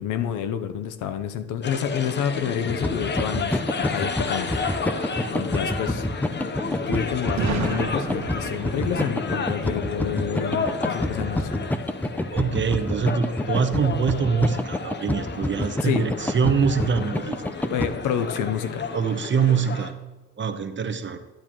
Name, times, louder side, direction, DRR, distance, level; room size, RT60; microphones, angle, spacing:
voice 1, 0.0-4.8 5.3-6.0 6.9-11.5 15.8-16.1 17.7-18.9, left 8 dB, 85° left, 10 dB, 0.8 m, -29 dB
sound 1, 1.6-19.9, left 4 dB, 35° left, 0.8 m, -32 dB
sound 2, 2.7-17.9, left 1 dB, 5° left, 0.5 m, -27 dB
Boom, 7.4-11.2, right 6 dB, 70° right, 1.3 m, -33 dB
voice 2, 12.3-17.3 18.9-19.9 20.4-21.2, right 6 dB, 40° right, 9 dB, 0.9 m, -24 dB
12.0 x 8.9 x 3.0 m, 1.3 s
cardioid pair, 90°, 30 cm